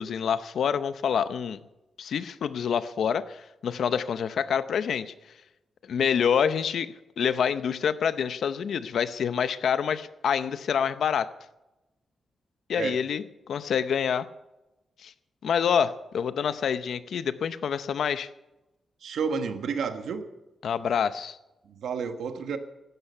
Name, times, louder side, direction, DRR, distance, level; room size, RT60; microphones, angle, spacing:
voice 1, 0.0-1.6 2.0-5.1 5.9-11.3 12.7-13.2 13.5-14.3 15.0-15.1 15.4-18.3 20.6-21.4, left 7 dB, 70° left, 13 dB, 0.7 m, -27 dB
voice 2, 19.0-20.2 21.6-22.6, right 5 dB, 85° right, 7 dB, 1.4 m, -30 dB
16.0 x 12.5 x 5.6 m, 0.99 s
wide cardioid pair, 165°, 0 cm